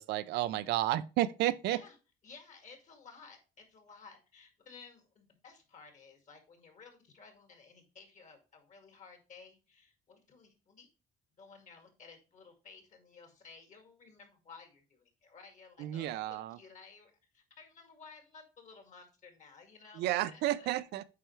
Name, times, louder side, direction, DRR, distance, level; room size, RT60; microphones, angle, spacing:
voice 1, 0.0-1.8 15.8-16.6 20.0-21.0, right 14 dB, 80° right, 0.5 m, -32 dB
voice 2, 2.2-10.9 11.4-20.7, left 5 dB, 45° left, 2.2 m, -55 dB
8.5 x 4.5 x 3.2 m
cardioid pair, 110°, 17 cm